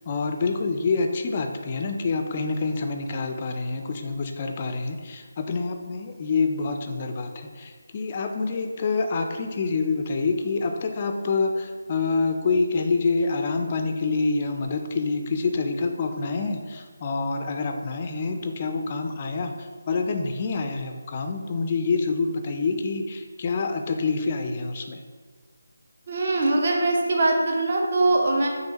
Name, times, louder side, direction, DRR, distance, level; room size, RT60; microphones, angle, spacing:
voice 1, 0.1-25.0, left 4 dB, 30° left, 5 dB, 0.3 m, -27 dB
voice 2, 26.1-28.5, right 2 dB, 40° right, 0 dB, 0.6 m, -22 dB
5.3 x 2.6 x 2.9 m, 1.5 s
figure-of-eight pair, 155°, 0 cm